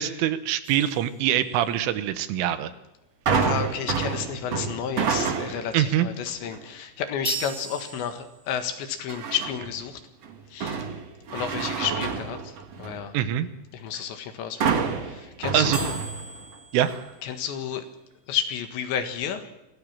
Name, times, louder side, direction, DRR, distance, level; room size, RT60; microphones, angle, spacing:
voice 1, 0.0-2.7 5.7-6.1 13.1-13.5 15.5-15.8 16.7-17.1, right 11 dB, 80° right, 12 dB, 3.6 m, -24 dB
sound 1, 0.6-1.9 7.2-8.7 15.7-17.9, right 3 dB, 20° right, 4.2 m, -38 dB
voice 2, 3.3-10.0 10.5-10.9 11.3-13.2 13.7-15.9 17.2-17.8 18.3-19.5, left 8 dB, 70° left, 8 dB, 3.7 m, -31 dB
sound 2, 3.3-5.8 6.3-6.6 9.1-9.8 10.2-13.1 14.6-16.5 16.9-17.0, right 6 dB, 55° right, 1.8 m, -28 dB
24.0 x 17.0 x 7.4 m, 0.94 s
omnidirectional pair, 5.7 m